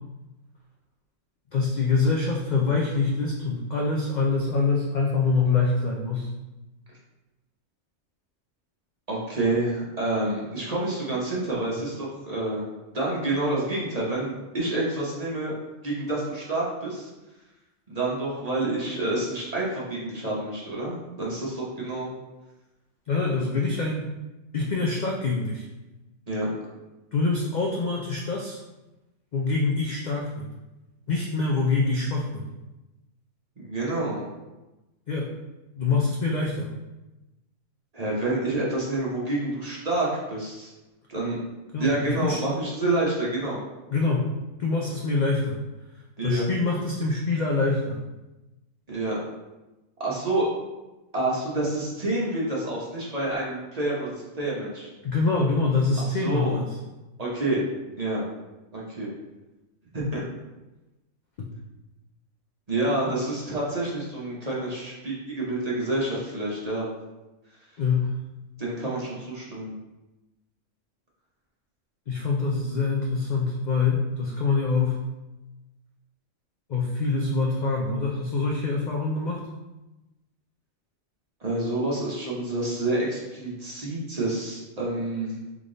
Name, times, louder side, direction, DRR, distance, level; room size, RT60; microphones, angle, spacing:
voice 1, 1.5-6.3 23.1-24.1 24.5-25.7 27.1-28.6 29.3-30.5 31.1-32.4 35.1-35.3 35.7-36.7 41.7-42.4 43.9-44.3 44.6-45.6 46.2-48.0 55.0-56.8 61.4-61.5 63.0-63.2 67.8-68.1 72.1-75.0 76.7-79.4, left 4 dB, 65° left, -1 dB, 0.4 m, -25 dB
voice 2, 9.1-12.6 12.9-15.5 15.8-17.1 17.9-22.1 26.3-26.5 33.6-34.3 37.9-40.7 41.1-41.4 41.8-43.6 46.2-46.4 48.9-49.2 50.0-50.5 51.1-54.9 56.0-56.6 57.2-58.2 58.7-59.1 59.9-60.2 62.7-66.9 68.6-69.7 81.4-85.4, right 2 dB, 30° right, -5 dB, 1.0 m, -28 dB
3.6 x 3.4 x 3.8 m, 1.1 s
omnidirectional pair, 1.4 m